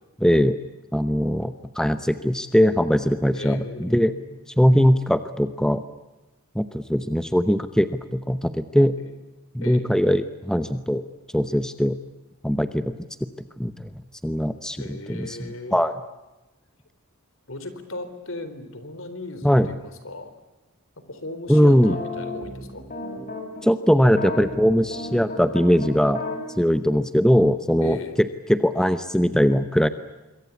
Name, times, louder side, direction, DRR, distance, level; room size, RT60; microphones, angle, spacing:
voice 1, 0.2-0.6 0.9-4.1 4.6-5.8 6.5-8.9 9.5-11.0 11.3-12.0 12.4-12.9 13.6-13.9 14.2-16.0 19.4-19.7 21.5-21.9 23.6-26.2 26.6-28.0 28.5-29.9, equal, 5° left, 11 dB, 0.8 m, -20 dB
voice 2, 3.3-4.4 9.0-9.1 9.6-9.9 14.8-15.8 17.5-20.3 21.0-22.9 27.8-28.2, left 2 dB, 60° left, 11 dB, 4.0 m, -37 dB
sound 1, 21.5-23.6 24.1-26.4, left 2 dB, 40° left, 6.7 m, -33 dB
26.5 x 23.0 x 8.4 m, 1.1 s
head